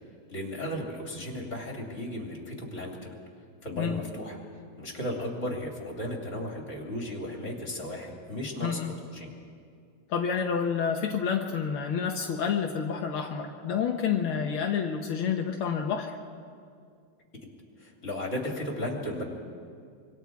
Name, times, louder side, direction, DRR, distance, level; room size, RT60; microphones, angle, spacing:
voice 1, 0.3-3.1 3.6-4.4 4.8-8.8 9.1-9.3 17.8-19.2, left 1 dB, 35° left, 0 dB, 3.4 m, -35 dB
voice 2, 8.6-8.9 10.1-16.2, left 7 dB, 75° left, 2 dB, 1.9 m, -29 dB
26.0 x 24.5 x 4.7 m, 2.3 s
omnidirectional pair, 2.3 m